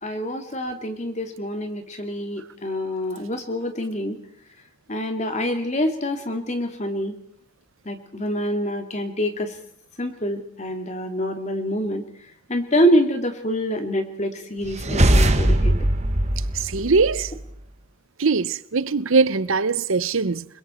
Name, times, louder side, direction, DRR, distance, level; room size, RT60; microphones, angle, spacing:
voice 1, 0.0-4.2 4.9-7.1 7.9-9.5 10.0-12.0 12.5-15.8, equal, 35° left, 2.4 m, -26 dB
sound 1, 14.6-17.4, right 1 dB, 30° right, 1.6 m, -20 dB
voice 2, 16.5-17.3 18.2-20.5, right 4 dB, 70° right, 0.8 m, -21 dB
30.0 x 21.0 x 4.4 m
head